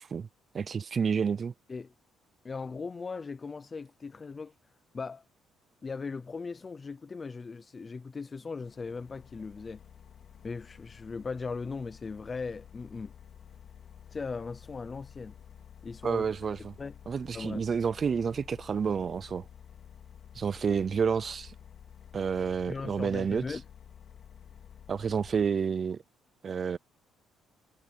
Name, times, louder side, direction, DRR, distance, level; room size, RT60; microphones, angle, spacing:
voice 1, 0.5-1.5 16.0-16.7 17.1-19.5 20.4-21.5 22.1-23.4 24.9-26.0 26.4-26.8, right 6 dB, 35° right, 0.4 m, -29 dB
voice 2, 2.4-4.5 4.9-5.2 5.8-9.8 10.4-13.1 14.1-15.4 15.8-16.3 16.6-16.9 17.3-17.7 22.7-23.6, left 4 dB, 25° left, 0.6 m, -38 dB
outdoor air, 8.6-25.5, left 8 dB, 50° left, 3.4 m, -51 dB
cardioid pair, 140°, 0 cm